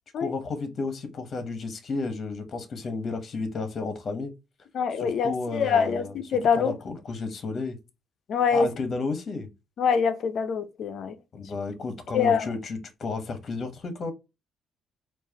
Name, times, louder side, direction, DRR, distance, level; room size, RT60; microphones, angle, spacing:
voice 1, 0.2-4.3 5.0-6.1 6.5-7.8 8.5-9.5 11.3-14.1, left 3 dB, 50° left, 1.1 m, -32 dB
voice 2, 4.7-6.7 8.3-8.7 9.8-11.2 12.1-12.5, left 6 dB, 65° left, 0.6 m, -24 dB
4.6 x 2.5 x 2.9 m
cardioid pair, 90°, 0 cm